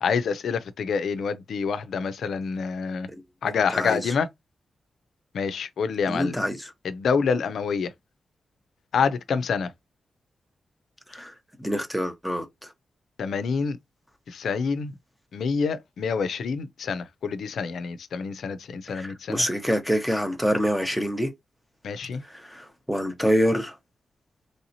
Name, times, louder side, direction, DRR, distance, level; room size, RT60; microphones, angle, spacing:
voice 1, 0.0-3.1 3.4-4.3 5.3-6.4 6.8-7.9 8.9-9.7 13.2-13.8 14.3-14.9 15.3-19.4 21.8-22.2, left 5 dB, 85° left, 0.4 m, -27 dB
voice 2, 6.1-6.7 11.1-11.3 11.6-12.7 18.9-21.3 22.3-23.8, equal, ahead, 0.8 m, -26 dB
3.2 x 2.7 x 2.6 m
wide cardioid pair, 125°, 0 cm